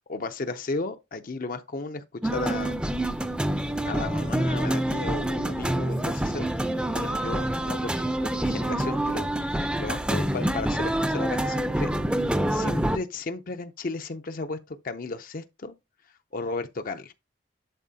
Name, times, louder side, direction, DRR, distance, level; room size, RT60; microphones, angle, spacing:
voice 1, 0.0-2.8 3.8-6.5 6.9-11.9 12.5-15.7 16.3-17.1, left 3 dB, 45° left, 0.5 m, -34 dB
sound 1, 2.2-13.0, right 1 dB, 5° right, 0.5 m, -27 dB
11.0 x 4.1 x 2.7 m
head